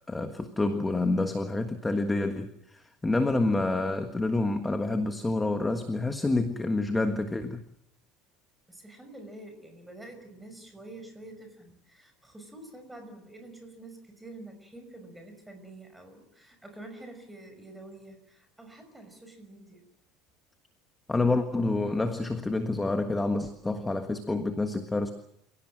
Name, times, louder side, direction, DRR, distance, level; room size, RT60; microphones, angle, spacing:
voice 1, 0.1-7.6 21.1-25.1, left 2 dB, 10° left, 7 dB, 1.5 m, -28 dB
voice 2, 8.7-19.8, right 2 dB, 5° right, 6 dB, 5.7 m, -47 dB
28.5 x 17.5 x 7.7 m, 0.75 s
cardioid pair, 155°, 0 cm